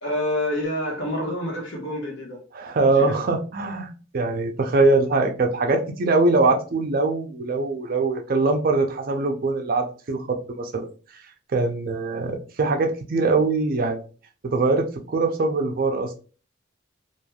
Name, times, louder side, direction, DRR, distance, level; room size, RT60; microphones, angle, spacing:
voice 1, 0.0-2.4 2.8-3.2, left 1 dB, 70° left, 1.1 m, -28 dB
voice 2, 2.5-10.9 11.5-14.0 14.4-16.2, right 3 dB, 45° right, 0.4 m, -22 dB
3.1 x 2.4 x 2.2 m
head